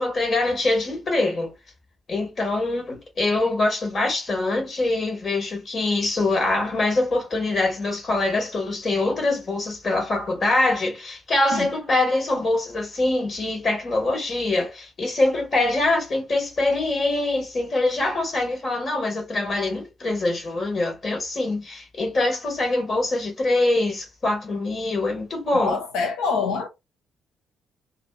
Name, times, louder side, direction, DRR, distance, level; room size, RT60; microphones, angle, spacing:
voice 1, 0.0-1.5 2.1-25.8, left 2 dB, 45° left, 1.3 m, -24 dB
voice 2, 25.5-26.7, left 5 dB, 65° left, 0.7 m, -25 dB
2.6 x 2.6 x 2.3 m
figure-of-eight pair, 40°, 0 cm